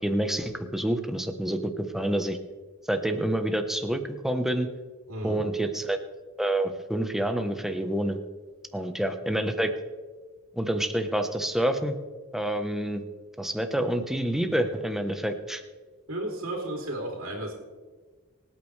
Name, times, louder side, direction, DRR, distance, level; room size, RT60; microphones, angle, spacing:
voice 1, 0.0-2.4 2.9-4.7 5.2-6.0 6.4-8.2 8.7-9.7 10.6-12.0 12.3-13.0 13.4-15.6, right 1 dB, ahead, 6 dB, 0.9 m, -28 dB
voice 2, 5.1-5.4 16.1-17.5, right 1 dB, 75° right, -1 dB, 3.1 m, -33 dB
25.5 x 8.7 x 3.3 m, 1.4 s
head